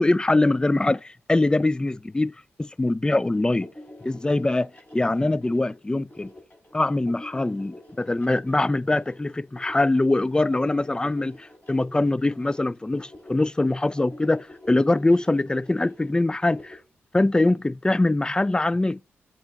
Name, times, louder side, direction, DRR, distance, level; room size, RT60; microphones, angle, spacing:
voice 1, 0.0-2.3 2.6-3.7 4.0-6.3 6.7-16.8 17.1-19.0, left 2 dB, 15° left, 0.3 m, -23 dB
sound 1, 3.0-16.7, left 1 dB, 40° left, 3.7 m, -47 dB
7.8 x 2.9 x 5.9 m
cardioid pair, 50°, 5 cm